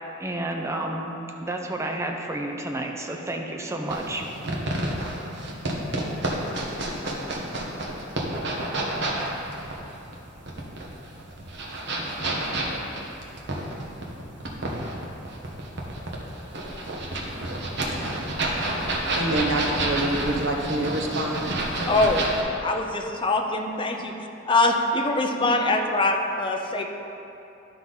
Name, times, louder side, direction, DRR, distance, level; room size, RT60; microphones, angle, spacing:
voice 1, 0.2-1.1 1.4-4.2, right 1 dB, 15° right, 2 dB, 0.6 m, -30 dB
sound 1, 3.9-22.4, right 1 dB, 65° right, 1.2 m, -29 dB
voice 2, 19.1-21.5 25.4-25.5, right 2 dB, 90° right, 1 dB, 1.1 m, -26 dB
voice 3, 21.9-22.3 22.6-24.1 24.5-26.9, left 2 dB, 25° left, 3 dB, 0.6 m, -23 dB
11.5 x 5.9 x 4.0 m, 2.9 s
head